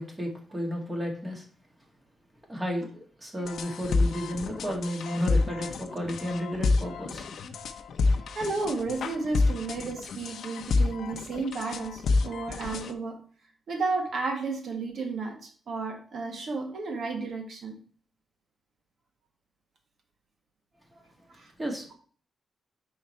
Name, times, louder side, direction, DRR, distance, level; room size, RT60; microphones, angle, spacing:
voice 1, 0.0-1.5 2.5-7.3 20.9-21.0 21.6-21.9, equal, 20° right, 2.0 m, -33 dB
sound 1, 3.4-12.9, left 3 dB, 75° left, 0.6 m, -29 dB
voice 2, 8.4-13.2 13.7-17.8 21.4-21.5, right 3 dB, 60° right, 1.6 m, -32 dB
5.3 x 4.7 x 4.4 m
cardioid pair, 120°, 0 cm